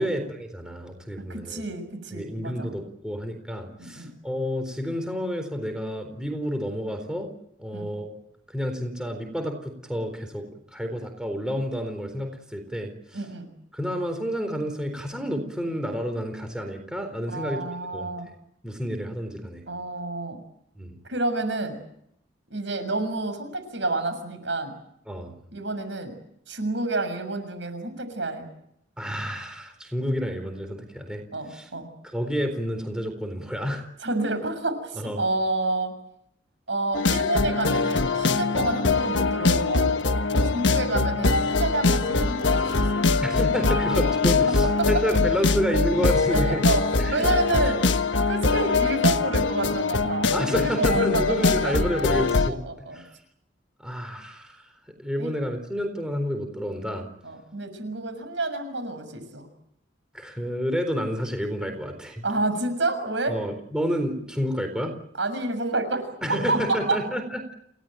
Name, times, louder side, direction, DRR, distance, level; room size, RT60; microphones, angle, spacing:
voice 1, 0.0-1.7 2.1-7.3 7.6-8.2 8.5-10.5 10.7-13.2 13.7-18.1 18.6-19.6 20.8-21.0 25.1-25.3 29.0-31.2 31.5-31.7 32.0-33.8 35.0-35.2 38.5-38.7 40.3-40.6 43.2-46.6 47.0-47.3 50.3-52.6 52.9-53.1 53.8-54.7 55.0-57.1 60.1-62.2 63.3-64.9 66.2-67.5, equal, 5° right, 5 dB, 4.0 m, -30 dB
voice 2, 1.3-2.7 3.8-4.1 7.7-7.9 13.1-13.5 17.3-18.3 19.7-20.4 21.0-21.8 22.5-24.7 25.5-26.1 26.5-28.5 31.3-31.9 34.0-35.9 36.7-39.9 40.4-43.0 44.8-44.9 46.3-47.8 48.3-51.8 52.5-53.0 55.2-55.3 57.2-59.5 62.2-63.4 65.2-67.0, right 2 dB, 70° right, 9 dB, 6.9 m, -29 dB
sound 1, 36.9-52.5, left 3 dB, 70° left, 1.3 m, -23 dB
29.5 x 18.5 x 9.2 m, 0.74 s
head